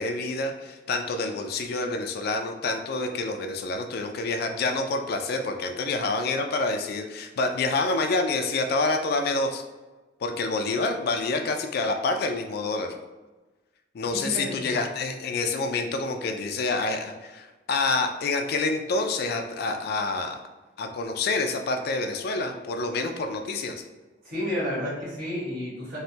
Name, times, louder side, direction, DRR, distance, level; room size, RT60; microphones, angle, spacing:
voice 1, 0.0-9.6 10.2-12.9 13.9-20.4 20.8-23.8, left 3 dB, 55° left, 5 dB, 0.3 m, -27 dB
voice 2, 14.2-14.8 24.2-26.0, left 1 dB, 60° right, -7 dB, 1.4 m, -31 dB
3.1 x 2.1 x 2.7 m, 1.2 s
head